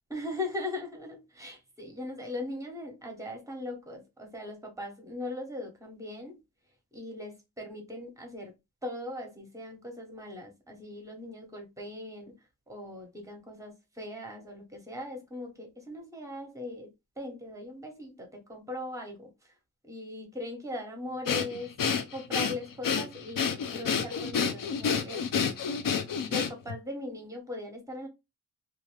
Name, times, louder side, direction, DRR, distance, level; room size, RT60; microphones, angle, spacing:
voice 1, 0.1-6.4 6.9-8.5 8.8-12.3 12.7-16.9 17.2-19.5 19.8-21.7 22.1-25.2 26.3-28.1, left 2 dB, 5° right, 0.8 m, -39 dB
Breathing, 21.3-26.8, left 6 dB, 55° left, 0.5 m, -29 dB
2.5 x 2.4 x 3.1 m
wide cardioid pair, 165°, 42 cm